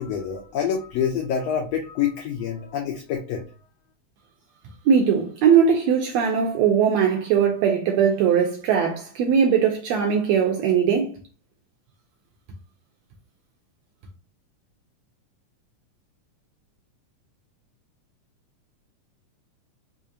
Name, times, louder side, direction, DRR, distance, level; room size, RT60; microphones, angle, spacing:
voice 1, 0.0-3.4, left 8 dB, 90° left, 1.4 m, -27 dB
voice 2, 4.9-11.1, right 7 dB, 80° right, 1.6 m, -20 dB
5.0 x 2.4 x 2.7 m
omnidirectional pair, 3.6 m